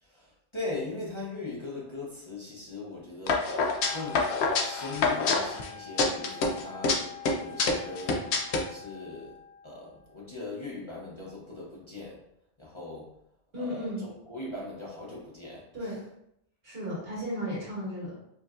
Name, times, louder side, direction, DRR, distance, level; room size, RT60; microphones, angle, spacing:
voice 1, 0.0-3.5 3.9-4.3 4.6-7.0 7.4-8.3 8.7-9.4 9.6-12.2 12.6-13.1 13.6-16.0, left 3 dB, 30° left, -5 dB, 0.7 m, -40 dB
sound 1, 3.3-5.7 6.0-7.0 7.3-8.6, left 3 dB, 85° left, 0.9 m, -26 dB
Wind instrument woodwind instrument, 3.7-9.8, left 8 dB, 50° left, 1.5 m, -44 dB
voice 2, 13.5-14.0 15.7-16.0 16.6-18.2, equal, 70° right, -6 dB, 1.7 m, -34 dB
4.7 x 2.6 x 2.4 m, 0.78 s
omnidirectional pair, 1.1 m